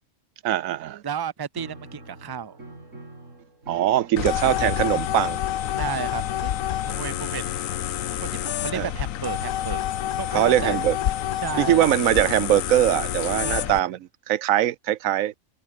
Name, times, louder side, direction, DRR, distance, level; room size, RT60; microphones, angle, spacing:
voice 1, 0.4-1.0 3.7-5.4 8.7-8.9 10.3-11.0 11.6-14.0 14.3-15.3, right 12 dB, 90° right, 1.1 m, -22 dB
voice 2, 1.0-2.6 4.2-4.6 5.8-7.5 8.2-9.8 10.1-10.9 11.4-11.9 13.3-13.8, right 7 dB, 25° right, 0.6 m, -33 dB
Piano, 1.6-8.3, right 2 dB, 70° right, 5.6 m, -45 dB
sound 1, 4.2-13.8, left 11 dB, 90° left, 1.2 m, -28 dB
omnidirectional pair, 1.4 m